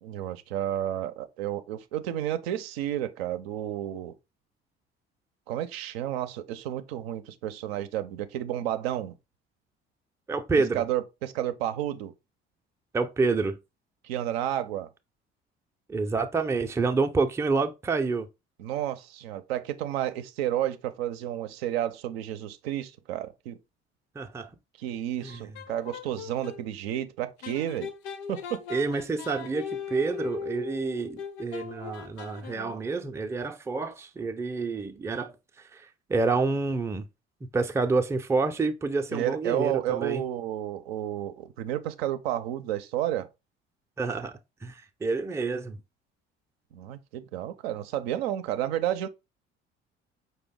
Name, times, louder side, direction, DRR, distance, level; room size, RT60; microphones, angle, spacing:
voice 1, 0.0-4.1 5.5-9.2 10.7-12.1 14.0-14.9 18.6-23.6 24.8-27.9 28.3-28.6 39.1-43.3 46.7-49.1, right 12 dB, 70° right, 0.5 m, -31 dB
voice 2, 10.3-10.8 12.9-13.6 15.9-18.3 24.1-24.5 25.2-25.5 28.7-37.1 37.5-40.2 44.0-44.3 44.6-45.8, right 4 dB, 10° right, 0.4 m, -28 dB
sound 1, 25.2-26.6 27.4-32.9, left 7 dB, 60° left, 0.6 m, -40 dB
5.0 x 2.2 x 3.6 m
figure-of-eight pair, 50°, 32 cm